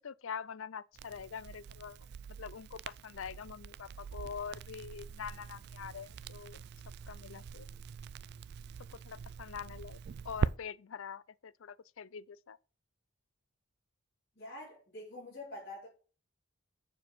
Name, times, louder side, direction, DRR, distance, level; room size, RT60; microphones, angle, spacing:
voice 1, 0.0-2.0 2.4-6.6 7.1-7.7 8.9-10.0 10.2-12.6, left 6 dB, 65° left, 0.4 m, -44 dB
Crackle, 1.0-10.5, right 6 dB, 50° right, 0.3 m, -42 dB
voice 2, 14.4-15.9, left 1 dB, 50° left, 3.6 m, -46 dB
7.1 x 4.5 x 6.9 m
head